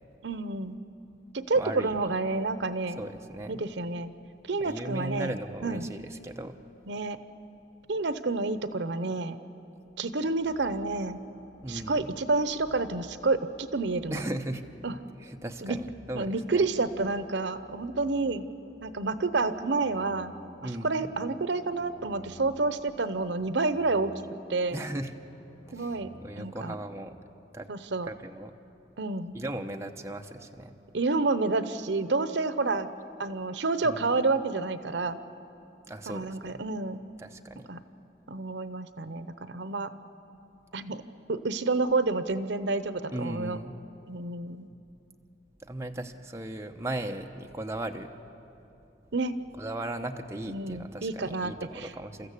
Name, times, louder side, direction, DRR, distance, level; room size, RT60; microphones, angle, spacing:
voice 1, 0.2-0.8 1.3-3.0 3.5-4.1 4.5-5.4 5.6-5.9 6.9-7.2 7.9-9.4 10.0-11.2 11.7-14.2 14.8-15.0 15.6-15.8 16.1-18.5 18.8-20.3 20.6-24.1 24.5-24.8 25.7-26.7 27.7-28.1 29.0-29.3 30.9-32.9 33.2-35.2 36.1-37.0 37.7-37.8 38.3-39.9 40.7-41.0 41.3-43.6 44.1-44.7 49.1-49.3 50.4-51.9, right 3 dB, 80° right, 12 dB, 0.8 m, -29 dB
voice 2, 1.6-2.0 3.0-3.6 4.6-6.6 11.6-12.1 14.1-14.6 15.2-16.7 20.6-21.1 24.7-25.1 25.7-27.1 27.5-27.8 28.1-28.5 29.3-30.7 33.8-34.0 35.8-36.6 37.2-37.7 43.1-43.7 45.6-48.1 49.6-52.3, right 1 dB, 15° right, 4 dB, 0.8 m, -37 dB
sound 1, 10.2-27.2, equal, 30° left, 1.5 m, -54 dB
30.0 x 14.0 x 8.3 m, 2.8 s
head